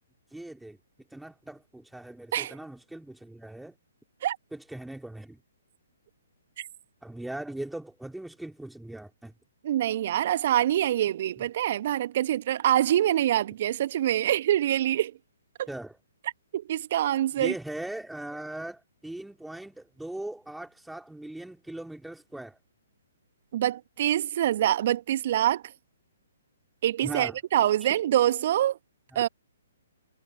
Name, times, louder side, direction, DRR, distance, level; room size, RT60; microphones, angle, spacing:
voice 1, 0.3-0.8 1.1-3.7 4.5-5.4 7.0-9.3 15.7-16.0 17.3-22.6 27.0-27.4 29.1-29.3, right 1 dB, ahead, 2.6 m, -39 dB
voice 2, 9.6-15.1 15.6-15.7 16.5-17.5 23.5-25.6 26.8-28.8 29.1-29.3, right 12 dB, 45° right, 1.6 m, -25 dB
figure-of-eight pair, 125°, 0 cm